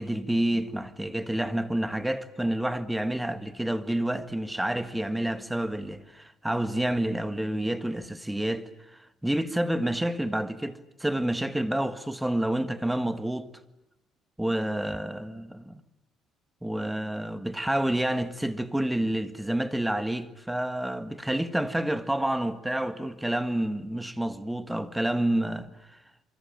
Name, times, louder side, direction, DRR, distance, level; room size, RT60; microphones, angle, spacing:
voice 1, 0.0-13.5 14.4-15.8 16.6-26.0, right 1 dB, 5° right, 1.6 m, -29 dB
27.0 x 24.0 x 9.0 m
cardioid pair, 115°, 0 cm